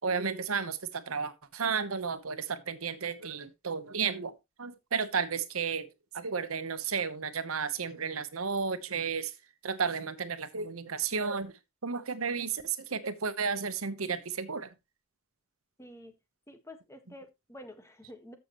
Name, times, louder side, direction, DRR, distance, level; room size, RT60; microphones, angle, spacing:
voice 1, 0.0-4.3 4.6-9.3 9.6-11.5 11.8-14.7, right 5 dB, 90° right, 1.1 m, -33 dB
voice 2, 15.8-16.1 16.5-18.4, left 1 dB, 15° left, 1.5 m, -49 dB
13.5 x 6.8 x 3.1 m
head